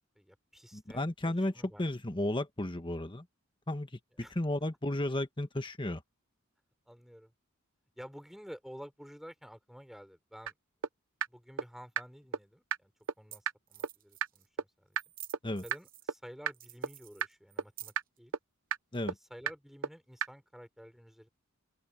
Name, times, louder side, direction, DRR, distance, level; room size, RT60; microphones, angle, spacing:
voice 1, 0.2-1.9 4.2-4.3 6.9-7.3 8.0-10.5 11.3-12.9 13.2-15.0 15.6-18.3 19.0-21.3, equal, ahead, 5.6 m, -51 dB
voice 2, 0.7-3.3 3.7-6.0 15.4-15.6 18.9-19.1, left 1 dB, 25° left, 1.4 m, -34 dB
sound 1, 10.5-10.6 10.8-10.9 11.2-11.3 11.6-11.7 12.0-12.1 12.3-12.4 12.7-12.8 13.1-13.2 13.5-13.6 13.8-13.9 14.2-14.3 14.6-14.7 15.0-15.1 15.3-15.4 15.7-15.8 16.1-16.2 16.5-16.6 16.8-16.9 17.2-17.3 17.6-17.7 18.0-18.1 18.3-18.4 18.7-18.8 19.1-19.2 19.5-19.6 19.8-19.9 20.2-20.3, right 7 dB, 70° right, 0.8 m, -31 dB
sound 2, 12.2-12.3 13.0-13.1 13.3-13.4 13.7-14.5 14.9-16.2 16.5-18.2, right 14 dB, 40° right, 1.0 m, -50 dB
open air
head